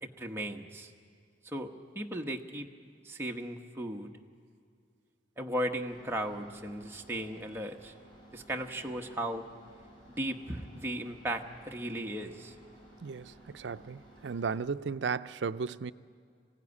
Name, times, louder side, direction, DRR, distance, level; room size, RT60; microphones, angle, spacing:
voice 1, 0.0-0.9 1.4-2.7 3.0-4.1 5.4-7.9 8.3-9.5 10.1-12.5, right 1 dB, 15° right, 1.0 m, -36 dB
sound 1, 5.8-14.6, right 1 dB, 25° left, 6.2 m, -56 dB
voice 2, 13.0-15.9, right 5 dB, 80° right, 0.5 m, -35 dB
21.5 x 16.0 x 9.7 m
head